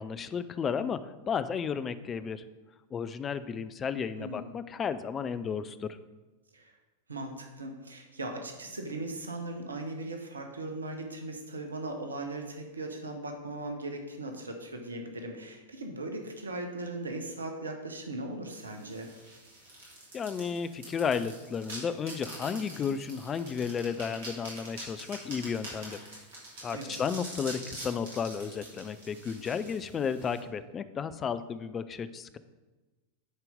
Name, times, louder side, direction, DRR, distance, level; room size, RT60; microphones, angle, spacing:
voice 1, 0.0-2.4 2.9-6.0 20.1-26.0 26.6-32.4, left 6 dB, 25° left, 13 dB, 0.4 m, -33 dB
voice 2, 4.2-4.5 6.5-6.8 7.1-19.1 26.7-27.0, right 2 dB, 75° right, 4 dB, 1.0 m, -38 dB
sound 1, 18.5-30.4, right 1 dB, 60° right, 2.9 m, -45 dB
9.7 x 4.5 x 5.2 m, 1.2 s
figure-of-eight pair, 90°, 0 cm